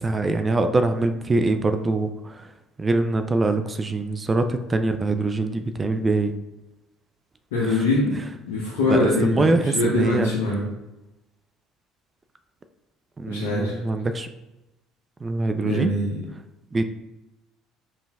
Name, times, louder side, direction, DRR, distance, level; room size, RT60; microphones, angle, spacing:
voice 1, 0.0-2.3 2.8-6.3 7.7-7.8 8.9-10.3 13.2-14.3 15.2-15.9 16.7-16.8, right 2 dB, 25° right, 8 dB, 0.3 m, -23 dB
voice 2, 7.5-10.7 13.3-13.8 15.6-16.2, left 2 dB, 75° left, -5 dB, 0.6 m, -23 dB
5.4 x 2.5 x 2.3 m, 0.98 s
hypercardioid pair, 60°, 0 cm